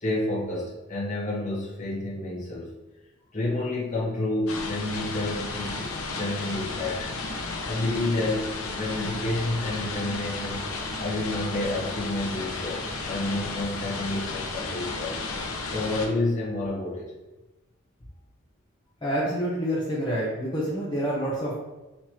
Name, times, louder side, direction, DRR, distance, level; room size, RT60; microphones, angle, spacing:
voice 1, 0.0-2.7 3.3-7.2 7.7-10.7 11.0-15.2 15.7-17.1, left 2 dB, 35° left, -6 dB, 1.3 m, -29 dB
sound 1, 4.5-16.1, left 3 dB, 80° left, 0.7 m, -33 dB
voice 2, 19.0-21.5, equal, 20° left, -8 dB, 0.8 m, -27 dB
5.8 x 3.1 x 3.0 m, 1.1 s
head